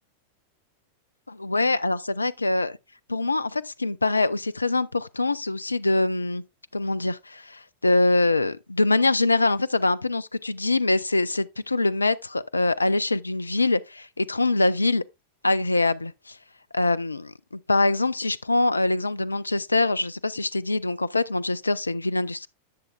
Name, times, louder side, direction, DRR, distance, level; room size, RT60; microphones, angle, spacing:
voice 1, 1.3-2.8 3.1-6.4 6.7-15.0 15.4-16.4 16.7-17.2 17.7-22.5, left 2 dB, 80° left, 0.4 m, -24 dB
10.5 x 7.5 x 2.3 m
figure-of-eight pair, 90°, 0 cm